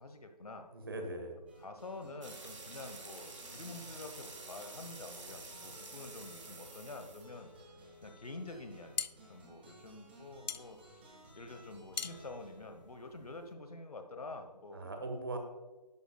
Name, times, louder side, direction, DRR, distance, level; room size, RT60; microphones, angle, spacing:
voice 1, 0.0-0.7 1.6-7.7 8.0-11.0 11.3-14.9, left 2 dB, 60° left, 6 dB, 1.2 m, -48 dB
voice 2, 0.7-1.4 14.7-15.4, right 2 dB, 35° right, 4 dB, 1.4 m, -40 dB
sound 1, 1.5-13.7, equal, 15° right, 1.4 m, -58 dB
sound 2, 2.2-8.0, right 3 dB, 50° right, 2.3 m, -50 dB
sound 3, 8.6-13.5, left 6 dB, 90° left, 0.5 m, -43 dB
11.5 x 11.0 x 2.3 m, 1.2 s
figure-of-eight pair, 170°, 21 cm